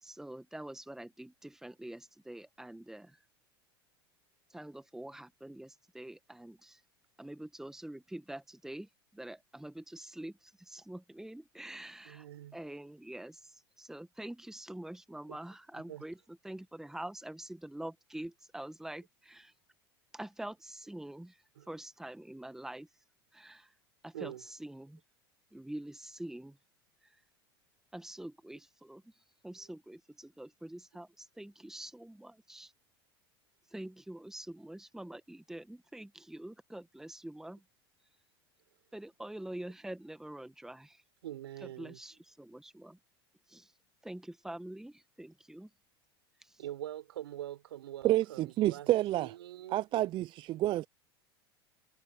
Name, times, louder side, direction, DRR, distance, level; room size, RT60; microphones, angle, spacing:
voice 1, 0.0-3.2 4.5-6.8 7.2-12.3 12.5-16.2 16.4-19.5 20.1-21.4 21.7-22.9 23.3-23.7 24.0-25.0 25.5-26.6 27.9-29.0 29.4-32.7 33.7-37.6 38.9-41.0 41.8-43.0 43.5-43.7 44.0-45.7 46.4-46.6, right 1 dB, 5° right, 1.4 m, -45 dB
voice 2, 12.0-12.6 15.3-15.4 15.7-16.1 21.6-21.7 24.1-24.5 29.6-29.7 41.2-42.0 46.6-48.9 49.2-50.1, right 12 dB, 80° right, 6.1 m, -44 dB
voice 3, 48.0-49.3 49.7-50.9, right 15 dB, 40° right, 0.3 m, -29 dB
hypercardioid pair, 95°, 13 cm